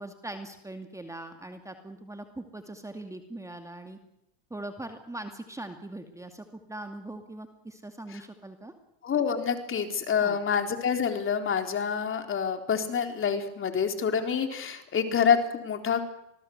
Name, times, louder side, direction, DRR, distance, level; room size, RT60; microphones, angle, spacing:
voice 1, 0.0-4.0 4.5-8.7 10.2-10.4, right 1 dB, 5° right, 6 dB, 2.4 m, -41 dB
voice 2, 9.0-16.0, left 7 dB, 30° left, 6 dB, 4.0 m, -27 dB
26.5 x 19.5 x 8.0 m, 0.83 s
supercardioid pair, 120°, 42 cm